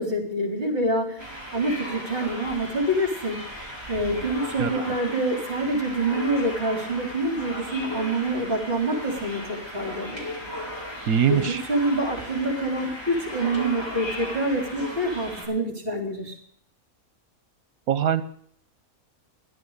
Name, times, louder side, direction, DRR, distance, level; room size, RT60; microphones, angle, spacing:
voice 1, 0.0-3.6 3.9-10.5 11.3-16.3, right 1 dB, 40° right, 1 dB, 4.1 m, -26 dB
sound 1, 1.2-15.5, equal, 15° left, 4.8 m, -36 dB
voice 2, 11.1-11.6 17.9-18.2, right 9 dB, 80° right, 12 dB, 1.5 m, -22 dB
16.5 x 11.0 x 6.6 m, 0.63 s
omnidirectional pair, 1.5 m